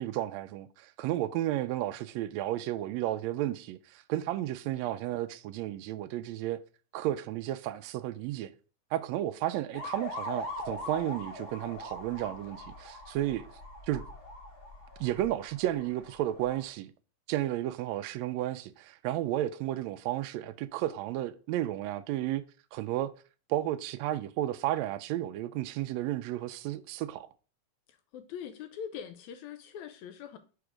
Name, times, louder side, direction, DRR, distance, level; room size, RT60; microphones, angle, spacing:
voice 1, 0.0-6.6 6.9-8.5 8.9-13.4 13.9-14.0 15.0-16.9 17.3-22.4 22.7-23.1 23.5-27.3, right 13 dB, 80° right, 1.6 m, -33 dB
sound 1, 9.7-16.7, left 1 dB, 40° left, 1.7 m, -42 dB
voice 2, 27.9-30.4, left 8 dB, 80° left, 1.8 m, -42 dB
5.2 x 4.6 x 5.0 m
omnidirectional pair, 3.6 m